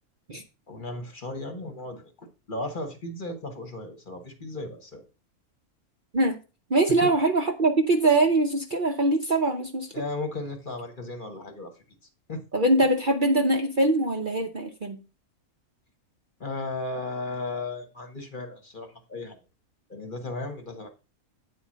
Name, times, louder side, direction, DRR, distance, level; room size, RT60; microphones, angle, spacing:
voice 1, 0.7-5.0 7.0-7.1 9.9-11.7 12.3-12.4 16.4-19.4 19.9-20.9, left 2 dB, 35° left, 5 dB, 1.3 m, -35 dB
voice 2, 6.7-9.9 12.5-15.0, right 2 dB, 40° right, 4 dB, 0.9 m, -23 dB
8.8 x 4.3 x 6.2 m, 0.32 s
omnidirectional pair, 1.5 m